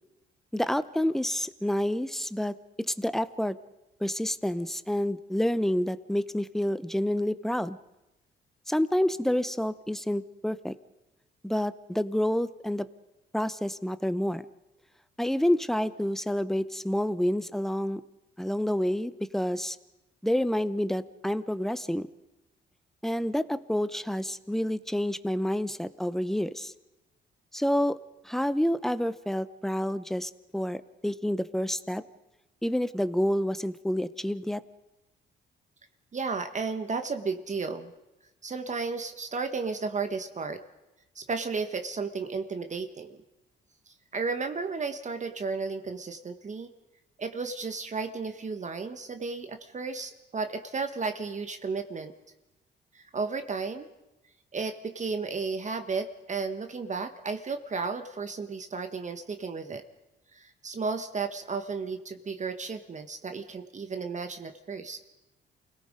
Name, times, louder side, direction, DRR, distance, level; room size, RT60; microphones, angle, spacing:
voice 1, 0.5-2.5 2.9-3.6 4.0-7.8 8.7-10.7 11.4-12.9 13.3-14.4 15.2-18.0 18.4-19.8 20.2-22.1 23.0-26.7 27.5-28.0 28.2-32.0 32.6-34.6, left 1 dB, ahead, 14 dB, 0.9 m, -28 dB
voice 2, 36.1-37.9 38.4-40.6 41.1-43.2 43.9-46.7 47.2-52.1 52.9-53.9 54.5-59.8 60.3-65.0, right 4 dB, 35° right, 7 dB, 1.5 m, -33 dB
28.5 x 17.5 x 5.2 m, 0.97 s
cardioid pair, 90°, 20 cm